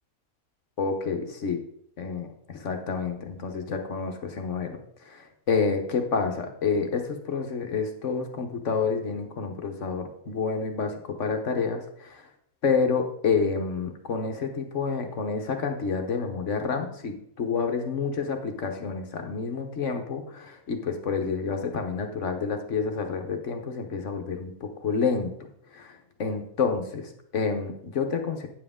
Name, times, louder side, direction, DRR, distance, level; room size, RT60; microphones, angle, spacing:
voice 1, 0.8-1.6 2.0-4.8 5.0-12.3 12.6-25.3 25.7-28.5, left 5 dB, 60° left, 5 dB, 1.3 m, -29 dB
9.2 x 7.6 x 3.6 m, 0.70 s
omnidirectional pair, 1.5 m